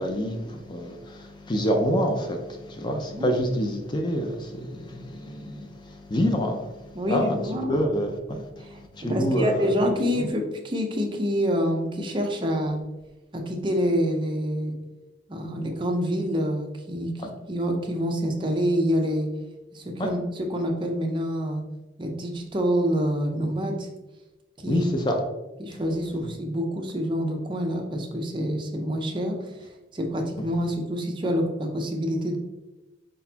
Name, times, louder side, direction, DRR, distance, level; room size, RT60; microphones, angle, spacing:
voice 1, 0.0-6.6 7.1-7.4 7.7-8.7 8.9-9.7 20.0-20.1 24.7-25.2, equal, 25° left, 3 dB, 0.4 m, -27 dB
voice 2, 6.9-7.8 8.6-12.8 13.3-14.8 15.3-19.3 19.7-21.7 22.0-23.9 24.6-24.9 25.6-32.4, equal, 25° right, 2 dB, 0.6 m, -27 dB
4.8 x 4.0 x 2.8 m, 1.1 s
head